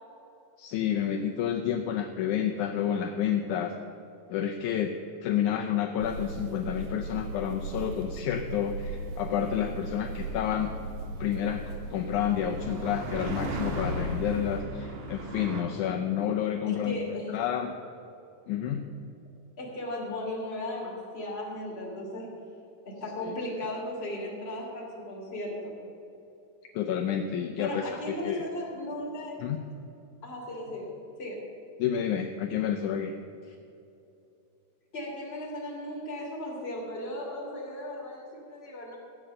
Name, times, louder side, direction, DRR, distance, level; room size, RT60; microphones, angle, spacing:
voice 1, 0.6-3.8 4.3-5.0 5.2-10.9 11.2-17.8 18.5-18.8 23.2-23.3 26.7-28.4 29.4-29.6 31.8-33.1, left 9 dB, 80° left, 3 dB, 1.8 m, -30 dB
sound 1, 6.0-14.6, right 2 dB, 80° right, 2.5 m, -38 dB
sound 2, 7.6-15.6, right 1 dB, 60° right, 2.5 m, -39 dB
voice 2, 16.7-17.4 19.6-22.3 22.8-25.8 27.5-29.6 30.2-30.9 31.2-31.4 34.9-39.0, left 1 dB, 20° left, -3 dB, 2.7 m, -36 dB
15.0 x 8.7 x 6.7 m, 2.8 s
omnidirectional pair, 4.1 m